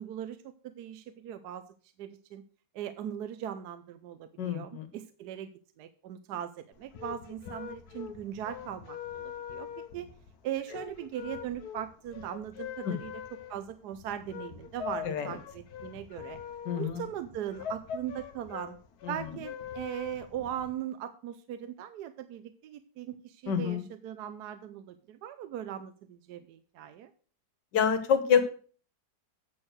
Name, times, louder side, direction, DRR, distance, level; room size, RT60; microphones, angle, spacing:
voice 1, 0.0-1.6 2.0-2.4 2.7-5.5 5.8-9.7 9.9-10.1 10.4-13.1 13.5-16.4 16.7-18.8 19.1-27.1, right 10 dB, 75° right, 10 dB, 1.2 m, -39 dB
voice 2, 4.4-4.9 12.8-13.0 15.0-15.4 16.7-17.0 19.0-19.3 23.5-23.9 27.7-28.4, left 7 dB, 90° left, 10 dB, 1.8 m, -27 dB
sound 1, 6.7-20.7, left 8 dB, 70° left, 1.4 m, -43 dB
8.7 x 6.3 x 6.4 m, 0.42 s
omnidirectional pair, 1.8 m